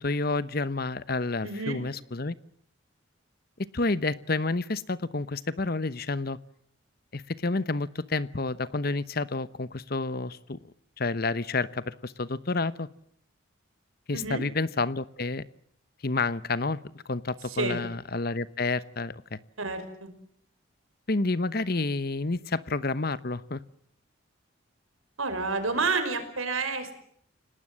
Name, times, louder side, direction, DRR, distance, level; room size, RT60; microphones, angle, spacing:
voice 1, 0.0-2.3 3.7-6.4 7.1-10.6 11.0-12.9 14.1-15.4 16.0-16.8 17.1-19.4 21.1-23.6, left 3 dB, 50° left, 16 dB, 0.9 m, -29 dB
voice 2, 1.4-1.8 14.1-14.4 17.4-17.8 19.6-20.1 25.2-26.9, right 3 dB, 90° right, 9 dB, 5.5 m, -29 dB
29.5 x 19.0 x 7.7 m, 0.68 s
head